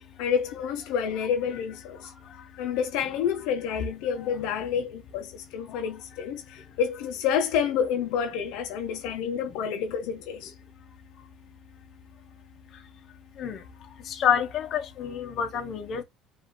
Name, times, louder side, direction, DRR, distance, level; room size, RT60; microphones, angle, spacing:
voice 1, 0.2-2.0 2.6-10.5, left 7 dB, 80° left, 0.9 m, -29 dB
voice 2, 14.2-16.0, left 8 dB, 45° left, 1.2 m, -27 dB
5.6 x 2.9 x 3.0 m
cardioid pair, 140°, 0 cm